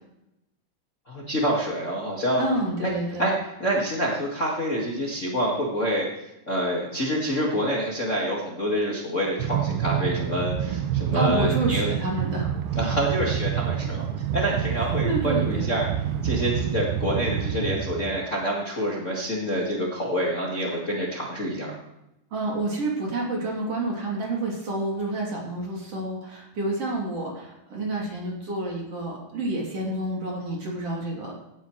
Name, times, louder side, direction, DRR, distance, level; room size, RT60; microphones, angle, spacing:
voice 1, 1.1-2.5 2.8-2.9 3.2-3.3 3.6-6.1 6.5-11.9 12.7-14.0 14.3-15.9 16.2-21.7, equal, 85° left, -4 dB, 0.6 m, -27 dB
voice 2, 2.4-3.2 11.1-12.8 15.0-15.7 22.3-31.4, right 2 dB, 40° right, -2 dB, 3.5 m, -29 dB
Train, 9.4-18.3, right 10 dB, 80° right, 2.4 m, -27 dB
16.5 x 11.5 x 3.2 m, 0.88 s
omnidirectional pair, 5.0 m